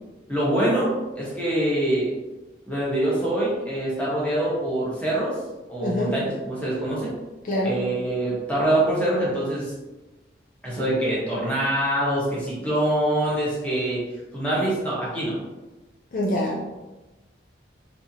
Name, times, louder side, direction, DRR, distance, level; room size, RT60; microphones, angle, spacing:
voice 1, 0.3-2.1 2.7-5.3 5.7-7.1 7.6-9.7 10.6-14.0 14.3-15.4, right 1 dB, 10° left, -7 dB, 1.2 m, -24 dB
voice 2, 5.8-6.2 7.4-7.8 16.1-16.7, left 1 dB, 45° left, -3 dB, 0.5 m, -25 dB
4.3 x 2.8 x 2.8 m, 1.1 s
head